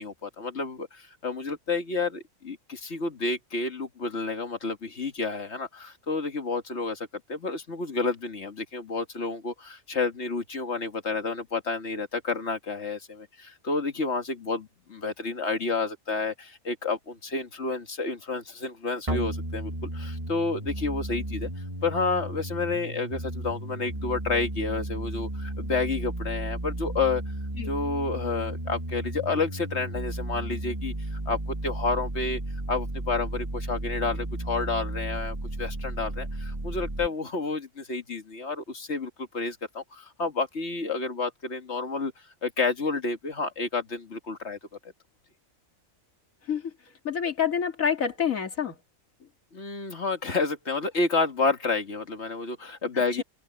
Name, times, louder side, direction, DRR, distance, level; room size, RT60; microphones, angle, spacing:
voice 1, 0.0-21.5 21.8-27.2 27.7-32.4 32.7-42.1 42.4-44.6 49.5-53.2, left 3 dB, 55° left, 2.1 m, -30 dB
sound 1, 19.1-37.1, right 1 dB, 25° right, 2.4 m, -34 dB
voice 2, 47.0-48.7, left 7 dB, 75° left, 2.6 m, -27 dB
open air
omnidirectional pair, 1.4 m